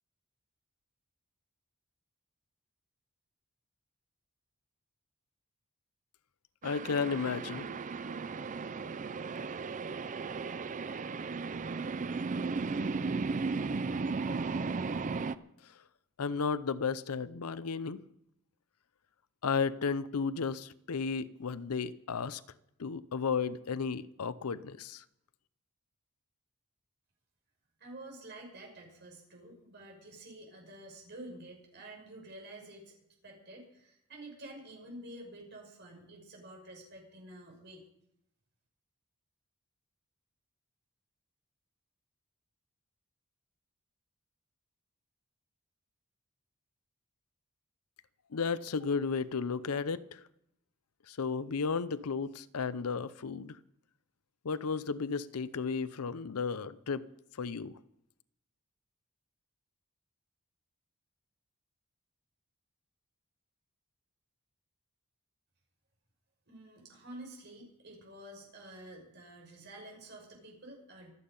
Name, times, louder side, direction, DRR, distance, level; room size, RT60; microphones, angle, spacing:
voice 1, 6.6-7.7 16.2-18.0 19.4-22.4 22.8-25.0 48.3-50.2 51.1-53.6 54.4-57.1 57.4-57.8, left 5 dB, 80° left, 17 dB, 0.6 m, -33 dB
sound 1, 6.6-15.4, right 4 dB, 35° right, 0.5 m, -35 dB
voice 2, 27.8-32.9 33.2-37.8 66.5-71.1, right 1 dB, 50° right, 0 dB, 6.1 m, -49 dB
26.0 x 8.9 x 5.4 m, 0.79 s
head